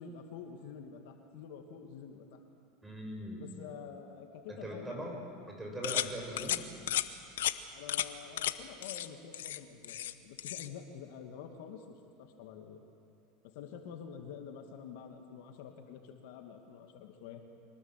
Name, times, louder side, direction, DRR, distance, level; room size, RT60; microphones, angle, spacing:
voice 1, 0.0-2.4 3.4-5.2 6.3-6.6 7.7-12.8 13.4-17.4, left 7 dB, 70° left, 4 dB, 2.2 m, -48 dB
voice 2, 2.8-3.4 4.5-6.6, right 1 dB, 10° right, 1 dB, 5.7 m, -41 dB
sound 1, 5.8-6.1 6.4-6.6 6.9-7.1 7.4-7.5 7.9-8.1 8.4-8.5 8.8-9.1 9.3-10.1 10.4-10.7, left 13 dB, 90° left, 0.9 m, -33 dB
24.0 x 19.0 x 7.5 m, 2.5 s
supercardioid pair, 115°, 0 cm